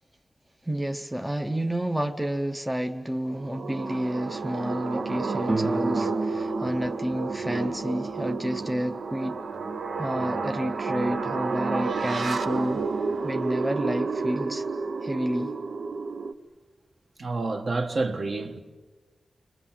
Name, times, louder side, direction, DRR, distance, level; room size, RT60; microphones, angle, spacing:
voice 1, 0.6-9.4 10.0-12.8 13.2-14.6 15.0-15.5, equal, 5° right, 0.7 m, -30 dB
sound 1, 3.2-16.3, right 4 dB, 65° right, 0.9 m, -31 dB
sound 2, 5.4-9.1, right 2 dB, 35° right, 1.1 m, -33 dB
voice 2, 17.2-18.6, right 3 dB, 50° right, 1.5 m, -29 dB
30.0 x 22.5 x 7.5 m
wide cardioid pair, 165°, 0 cm